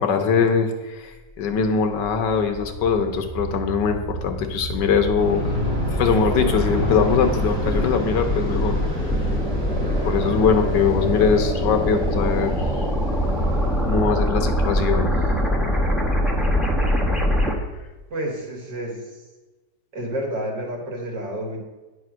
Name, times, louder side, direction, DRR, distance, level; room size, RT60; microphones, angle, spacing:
voice 1, 0.0-5.4 6.0-8.8 10.0-12.9 13.8-15.1, left 6 dB, 75° left, 6 dB, 1.5 m, -22 dB
sound 1, 1.7-17.5, equal, ahead, 0.5 m, -24 dB
Aircraft, 5.2-14.2, left 1 dB, 35° right, 3.0 m, -30 dB
voice 2, 18.1-19.1 19.9-21.6, right 1 dB, 70° right, 0 dB, 2.5 m, -29 dB
9.6 x 4.8 x 6.1 m, 1.2 s
omnidirectional pair, 2.0 m